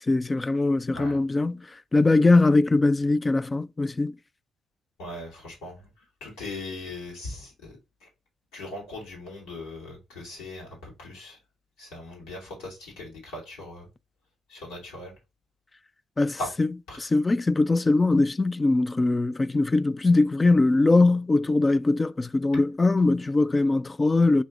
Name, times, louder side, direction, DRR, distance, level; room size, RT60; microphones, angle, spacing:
voice 1, 0.1-1.7 1.9-4.2 16.2-16.7 17.0-24.4, left 2 dB, 25° left, 0.3 m, -21 dB
voice 2, 5.0-5.9 6.2-8.1 8.5-11.4 11.8-13.9 14.5-15.1 16.4-16.5 16.9-17.0, left 2 dB, 90° left, 2.7 m, -39 dB
4.1 x 3.4 x 3.7 m
supercardioid pair, 65°, 0 cm